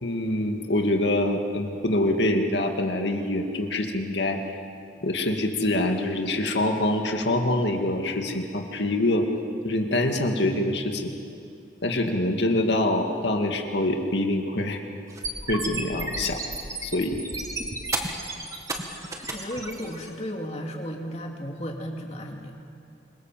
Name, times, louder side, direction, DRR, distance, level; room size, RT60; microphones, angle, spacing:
voice 1, 0.0-4.4 5.0-9.3 9.6-11.0 11.8-14.8 15.5-16.4 16.8-17.2, left 1 dB, 70° left, 3 dB, 2.2 m, -25 dB
sound 1, 15.1-20.1, right 2 dB, 15° right, 1.9 m, -32 dB
voice 2, 19.3-22.5, equal, 35° left, 2 dB, 2.6 m, -34 dB
26.5 x 22.5 x 7.6 m, 2.6 s
head